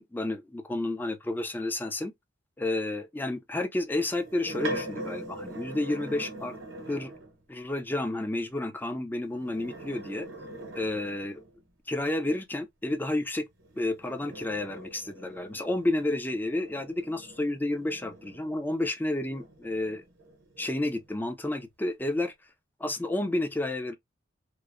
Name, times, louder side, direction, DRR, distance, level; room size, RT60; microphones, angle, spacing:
voice 1, 0.0-2.1 2.6-6.6 6.9-7.1 7.5-10.3 10.8-11.4 11.9-13.5 13.7-20.0 20.6-22.3 22.8-23.9, left 2 dB, 10° left, 0.4 m, -31 dB
sound 1, 4.0-7.4 9.3-11.6 13.6-18.8 19.3-21.1, right 1 dB, 75° right, 0.8 m, -42 dB
2.9 x 2.0 x 2.4 m
head